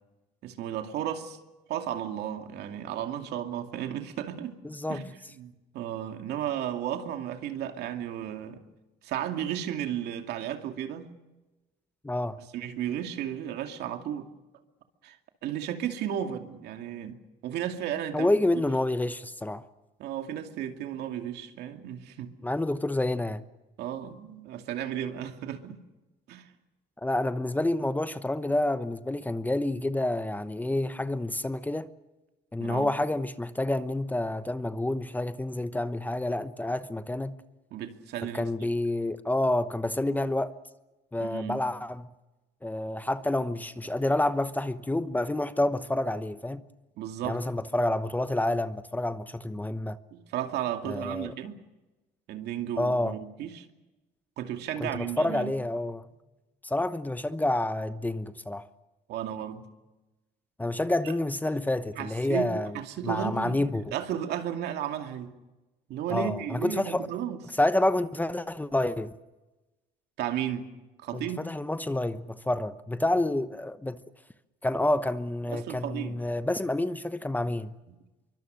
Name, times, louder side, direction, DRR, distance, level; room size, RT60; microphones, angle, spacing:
voice 1, 0.4-1.4 1.7-4.6 4.9-5.1 5.3-8.6 9.0-11.1 12.5-14.3 15.0-15.2 15.4-17.2 17.4-18.3 20.0-22.3 23.8-25.8 26.3-26.5 32.6-32.9 37.7-38.7 41.2-41.6 47.0-47.4 50.1-51.6 52.3-53.6 54.4-55.5 59.1-59.7 62.0-63.5 63.9-65.3 65.9-67.4 70.2-70.7 71.0-71.5 75.4-76.2, right 10 dB, 75° right, 2.5 m, -34 dB
voice 2, 4.6-5.1 12.0-12.4 18.1-19.7 22.4-23.4 27.0-31.9 32.5-37.4 38.3-40.5 41.1-42.1 42.6-46.6 47.2-50.0 50.8-51.3 52.8-53.2 54.8-56.1 56.6-58.7 60.6-62.7 63.0-63.9 66.1-67.1 67.6-69.1 71.1-74.0 74.6-77.7, left 1 dB, 10° left, 1.0 m, -28 dB
25.5 x 24.0 x 6.4 m
cardioid pair, 110°, 17 cm